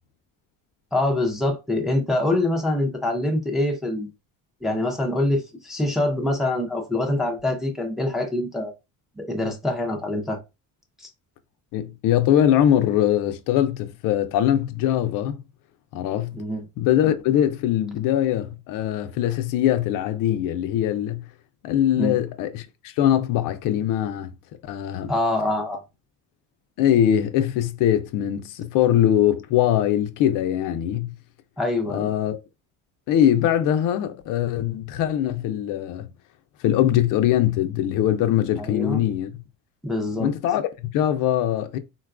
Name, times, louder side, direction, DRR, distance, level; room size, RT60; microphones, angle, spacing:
voice 1, 0.9-4.1 4.6-8.7 9.2-10.4 11.0-11.1 16.3-16.6 22.0-22.2 25.1-25.8 31.6-32.1 38.6-39.0 39.8-40.3, left 1 dB, ahead, 0.5 m, -25 dB
voice 2, 11.7-15.4 15.9-16.4 16.8-21.3 21.6-24.3 24.6-25.1 26.8-31.1 31.9-32.4 33.1-36.1 36.6-39.3 40.2-41.8, left 11 dB, 65° left, 0.5 m, -22 dB
3.8 x 2.2 x 2.4 m
cardioid pair, 145°, 34 cm